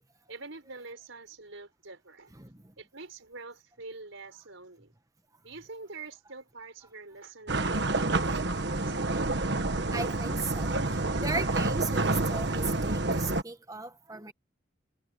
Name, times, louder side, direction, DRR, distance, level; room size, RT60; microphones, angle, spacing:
voice 1, 0.3-2.3 2.8-4.9 5.4-9.2, right 3 dB, 80° right, 4.5 m, -46 dB
voice 2, 2.3-2.7 9.9-10.7 11.2-14.3, right 3 dB, 15° right, 1.5 m, -37 dB
sound 1, 7.5-13.4, right 2 dB, 55° right, 1.4 m, -28 dB
head